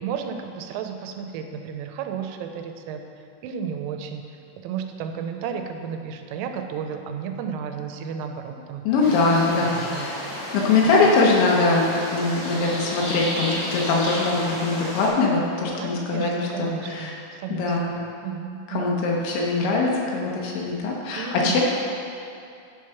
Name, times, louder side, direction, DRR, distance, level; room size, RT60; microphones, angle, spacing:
voice 1, 0.0-3.0 3.4-4.3 4.6-8.9 9.5-10.1 10.8-10.9 15.7-19.0 21.2-21.6, right 7 dB, 85° right, 5 dB, 3.2 m, -33 dB
voice 2, 8.8-10.2 10.5-17.2 17.5-17.9 18.7-21.6, left 3 dB, 75° left, -2 dB, 3.2 m, -22 dB
sound 1, 9.0-15.1, left 1 dB, 50° left, 1.8 m, -32 dB
10.0 x 4.7 x 5.7 m, 2.6 s
omnidirectional pair, 5.7 m